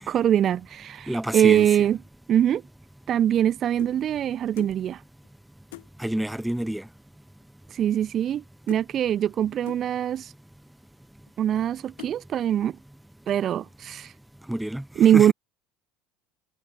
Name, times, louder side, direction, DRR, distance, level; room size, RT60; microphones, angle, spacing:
voice 1, 0.1-2.0 2.3-2.6 3.1-5.0 7.7-10.3 11.4-12.8 13.3-14.1 15.0-15.3, right 10 dB, 45° right, 1.0 m, -22 dB
voice 2, 1.1-1.7 6.0-6.8 14.5-14.8 15.1-15.3, right 1 dB, 5° right, 2.3 m, -28 dB
sound 1, 2.9-4.0 4.6-4.8 5.2-5.3 5.7-5.9 6.8-6.9 7.1-7.5 7.7-8.4 8.7-8.9 9.7-9.9 10.6-10.7 11.3-11.6 12.0-12.2 12.7-13.0 13.3-13.6, left 21 dB, 75° left, 3.5 m, -45 dB
hypercardioid pair, 80°, 0 cm